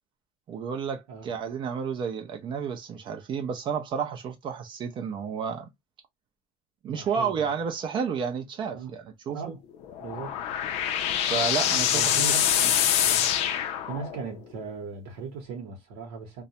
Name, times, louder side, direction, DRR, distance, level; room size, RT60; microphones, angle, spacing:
voice 1, 0.5-5.7 6.8-9.5 11.2-12.3, right 6 dB, 45° right, 0.5 m, -31 dB
voice 2, 6.9-7.5 8.7-8.9 9.3-9.6 10.0-10.4 11.9-13.3 13.9-16.4, right 5 dB, 85° right, 0.9 m, -38 dB
sound 1, 9.8-14.4, left 10 dB, 65° left, 0.5 m, -25 dB
2.3 x 2.1 x 2.7 m
supercardioid pair, 115°, 12 cm